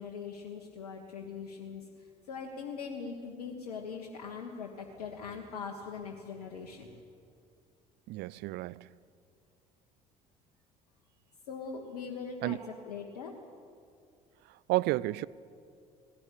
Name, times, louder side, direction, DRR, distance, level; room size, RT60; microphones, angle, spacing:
voice 1, 0.0-7.0 11.5-13.3, left 5 dB, 75° left, 1.5 m, -41 dB
voice 2, 8.1-8.9 12.4-12.6 14.7-15.3, right 19 dB, 60° right, 0.5 m, -31 dB
19.5 x 16.0 x 8.5 m
hypercardioid pair, 55°, 20 cm